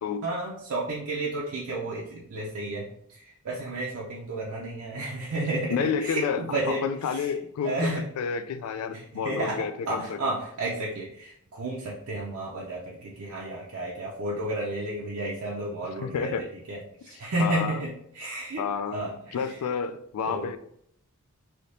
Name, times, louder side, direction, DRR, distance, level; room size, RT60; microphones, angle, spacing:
voice 1, 0.2-6.8 7.1-7.3 7.6-8.0 8.9-16.3 16.7-18.6 18.9-19.5 20.2-20.5, right 2 dB, 65° right, -4 dB, 0.5 m, -32 dB
voice 2, 5.7-7.9 8.2-10.3 16.0-16.5 17.1-17.8 18.6-20.6, left 6 dB, 80° left, 11 dB, 0.3 m, -30 dB
3.5 x 2.8 x 2.6 m, 0.71 s
head